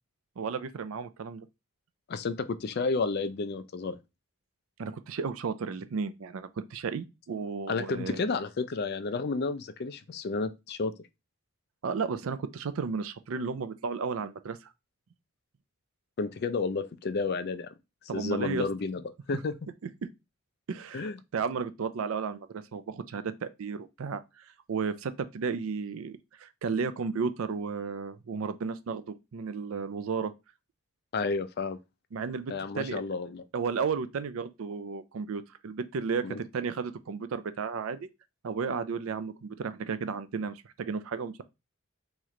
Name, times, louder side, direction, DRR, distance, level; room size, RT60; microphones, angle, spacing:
voice 1, 0.4-1.5 4.8-8.2 11.8-14.7 18.1-18.7 20.7-30.3 32.1-33.0 33.5-38.1 38.4-41.4, right 5 dB, 70° right, 0.4 m, -33 dB
voice 2, 2.1-4.0 7.7-10.9 16.2-17.7 18.1-19.0 19.3-19.5 20.9-21.2 31.1-31.8 32.5-33.4 36.2-36.4, left 4 dB, 45° left, 0.4 m, -31 dB
3.1 x 3.0 x 3.7 m
head